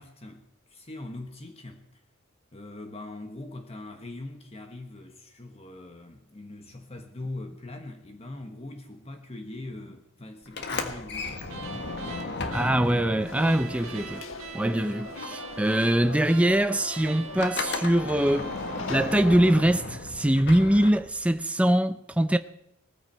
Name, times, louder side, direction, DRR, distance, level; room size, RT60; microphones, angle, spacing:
voice 1, 0.0-2.0 2.5-11.4, left 2 dB, 30° left, 1.3 m, -41 dB
Sliding door, 10.5-14.7 15.0-21.4, left 3 dB, 55° left, 1.6 m, -36 dB
sound 1, 11.5-19.7, right 4 dB, 80° right, 1.5 m, -42 dB
voice 2, 12.5-14.2 14.5-18.6 18.9-22.4, right 1 dB, 5° right, 0.5 m, -23 dB
Conversation / Crowd, 13.3-19.5, left 3 dB, 70° left, 1.4 m, -41 dB
19.0 x 14.0 x 4.5 m
head